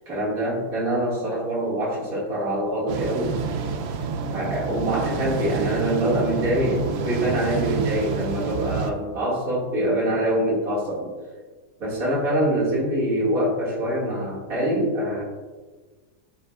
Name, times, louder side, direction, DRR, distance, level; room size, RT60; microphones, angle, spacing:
voice 1, 0.1-3.3 4.3-11.1 11.8-15.2, right 1 dB, 55° right, -6 dB, 2.7 m, -24 dB
sound 1, 2.9-8.9, right 5 dB, 80° right, 0.5 m, -28 dB
10.5 x 6.1 x 2.4 m, 1.3 s
omnidirectional pair, 1.7 m